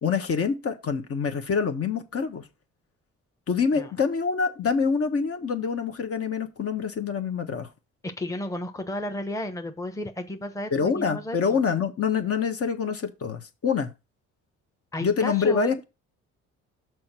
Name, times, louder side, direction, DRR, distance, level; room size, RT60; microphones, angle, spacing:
voice 1, 0.0-2.5 3.5-7.7 10.7-13.9 15.0-15.8, left 5 dB, 50° left, 1.4 m, -26 dB
voice 2, 8.0-11.6 14.9-15.8, left 1 dB, 10° left, 1.1 m, -33 dB
6.2 x 4.6 x 6.1 m
cardioid pair, 90°, 30 cm